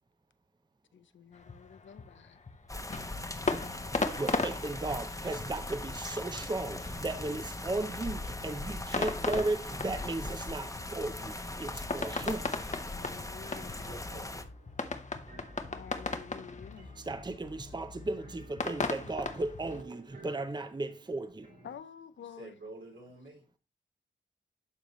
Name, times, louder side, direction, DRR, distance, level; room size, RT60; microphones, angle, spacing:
voice 1, 0.9-2.4 12.8-13.7 15.7-16.9 21.6-22.6, left 8 dB, 80° left, 0.6 m, -49 dB
sound 1, 1.3-19.8, left 3 dB, 40° left, 0.9 m, -38 dB
sound 2, 2.7-14.4, left 2 dB, 15° left, 0.9 m, -40 dB
voice 2, 4.1-12.5 17.0-21.5, right 2 dB, 20° right, 0.7 m, -35 dB
sound 3, 13.4-21.8, right 4 dB, 60° right, 3.3 m, -56 dB
voice 3, 13.8-14.3 22.4-23.4, right 2 dB, 80° right, 3.2 m, -48 dB
11.5 x 3.9 x 3.1 m
cardioid pair, 65°, 19 cm